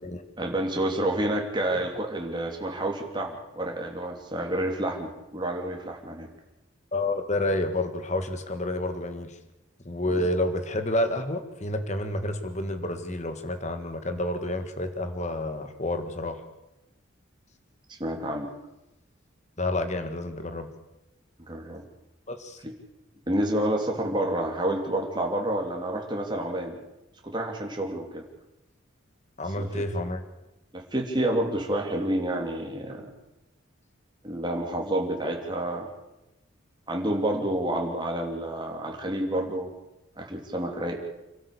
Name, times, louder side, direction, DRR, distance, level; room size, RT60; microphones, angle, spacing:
voice 1, 0.4-6.3 10.2-10.3 17.9-18.5 21.4-21.8 22.6-22.7 23.3-26.8 27.2-28.2 29.6-29.7 30.7-33.1 34.2-35.9 36.9-39.7 40.2-41.0, right 1 dB, 20° right, 1 dB, 3.1 m, -29 dB
voice 2, 6.9-9.4 9.8-16.4 19.6-20.7 22.3-22.6 29.4-30.2, left 1 dB, 35° left, 7 dB, 1.7 m, -29 dB
27.0 x 13.0 x 8.6 m, 0.94 s
head